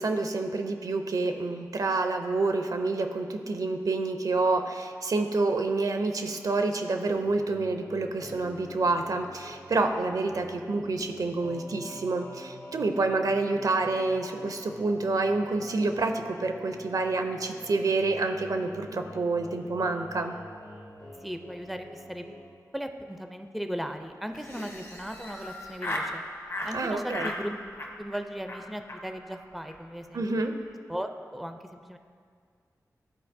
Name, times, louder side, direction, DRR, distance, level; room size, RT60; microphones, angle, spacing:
voice 1, 0.0-20.3 26.7-27.3 30.1-30.5, right 3 dB, 65° right, 6 dB, 0.5 m, -28 dB
sound 1, 7.0-22.5, left 1 dB, 75° left, 1.3 m, -46 dB
voice 2, 21.2-22.4 22.7-26.2 26.6-27.6 28.0-30.5 30.9-32.0, equal, ahead, 6 dB, 0.4 m, -37 dB
Laughter, 24.3-26.1 26.5-26.7 27.1-27.4 27.7-28.2 28.5-28.6 28.9-29.0 29.3-29.4 29.6-29.8 30.0-30.4, left 1 dB, 50° left, 1.1 m, -36 dB
11.5 x 4.0 x 2.6 m, 2.1 s
cardioid pair, 50°, 7 cm